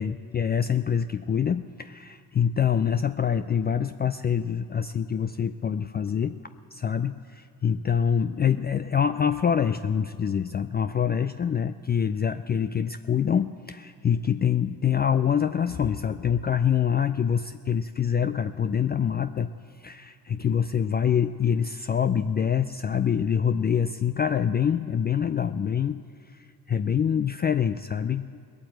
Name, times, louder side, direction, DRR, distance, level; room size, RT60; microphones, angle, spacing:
voice 1, 0.0-6.3 6.7-19.5 19.8-26.0 26.7-28.4, left 8 dB, 25° left, 10 dB, 0.4 m, -25 dB
19.0 x 8.8 x 7.9 m, 2.1 s
supercardioid pair, 75°, 40 cm